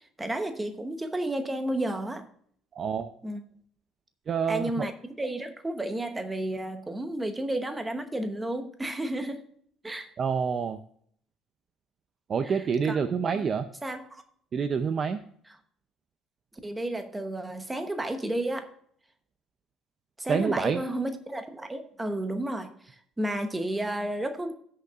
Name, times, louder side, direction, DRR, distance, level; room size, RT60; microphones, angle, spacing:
voice 1, 0.2-2.3 3.2-3.4 4.5-4.9 5.2-9.4 9.8-10.1 12.4-12.6 12.9-13.0 13.3-13.5 13.8-14.2 16.6-18.7 20.2-24.5, right 1 dB, 10° right, 7 dB, 0.9 m, -32 dB
voice 2, 2.8-3.1 4.3-4.9 10.2-10.8 12.3-13.6 14.5-15.2 20.3-20.8, right 6 dB, 25° right, 9 dB, 0.5 m, -27 dB
17.0 x 6.6 x 2.4 m, 0.62 s
cardioid pair, 180°, 0 cm